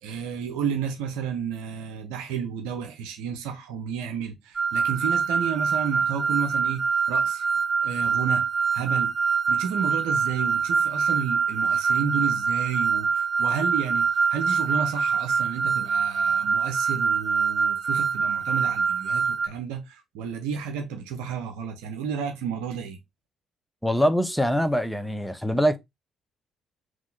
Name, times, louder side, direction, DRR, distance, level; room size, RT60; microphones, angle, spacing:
voice 1, 0.0-6.8 7.1-7.4 7.8-8.4 8.7-9.1 9.5-23.0, right 7 dB, 75° right, 0.7 m, -31 dB
sound 1, 4.6-19.5, right 5 dB, 25° right, 0.4 m, -24 dB
voice 2, 23.8-25.8, equal, ahead, 0.8 m, -23 dB
3.7 x 3.0 x 3.9 m
hypercardioid pair, 45°, 0 cm